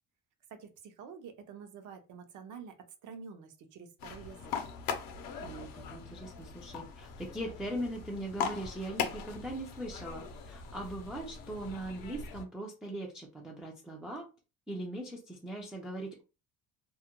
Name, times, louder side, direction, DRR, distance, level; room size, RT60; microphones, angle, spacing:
voice 1, 0.5-2.8 3.0-4.6, right 6 dB, 55° right, 0.6 m, -48 dB
sound 1, 4.0-12.4, left 6 dB, 70° left, 0.6 m, -40 dB
voice 2, 5.4-14.3 14.7-16.2, right 1 dB, 5° right, 0.3 m, -40 dB
2.3 x 2.1 x 2.9 m
cardioid pair, 140°, 36 cm